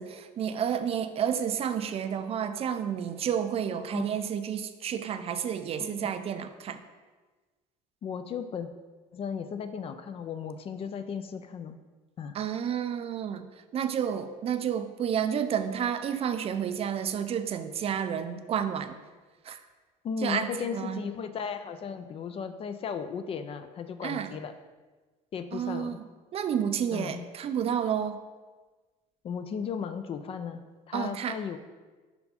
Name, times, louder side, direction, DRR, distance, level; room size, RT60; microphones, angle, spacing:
voice 1, 0.0-6.8 12.3-13.4 13.7-19.0 19.4-19.6 20.2-21.0 24.0-24.3 25.5-26.0 26.3-28.2 30.9-31.4, right 8 dB, 40° right, 10 dB, 0.4 m, -30 dB
voice 2, 3.7-4.2 5.8-6.1 8.0-8.7 9.1-11.8 12.2-12.4 20.0-24.5 25.3-26.0 26.9-27.3 29.2-31.6, left 6 dB, 40° left, 9 dB, 0.4 m, -36 dB
5.6 x 4.3 x 4.2 m, 1.3 s
cardioid pair, 115°, 16 cm